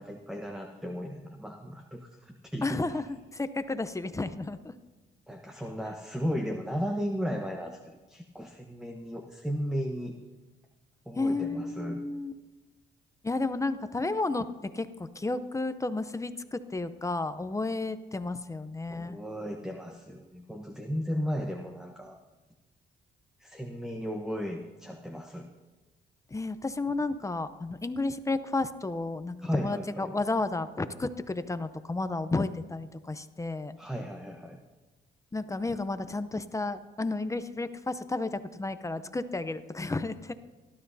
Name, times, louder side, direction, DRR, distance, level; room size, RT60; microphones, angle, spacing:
voice 1, 0.0-2.8 5.3-10.2 11.1-12.0 18.9-22.2 23.4-25.5 29.4-30.2 33.8-34.6, equal, 5° right, 3 dB, 1.0 m, -35 dB
voice 2, 2.6-4.7 11.2-12.3 13.2-14.5 14.7-14.9 15.2-19.2 26.3-33.8 35.3-40.3, left 3 dB, 15° left, 11 dB, 0.6 m, -32 dB
18.5 x 12.5 x 2.7 m, 1.2 s
cardioid pair, 90°, 20 cm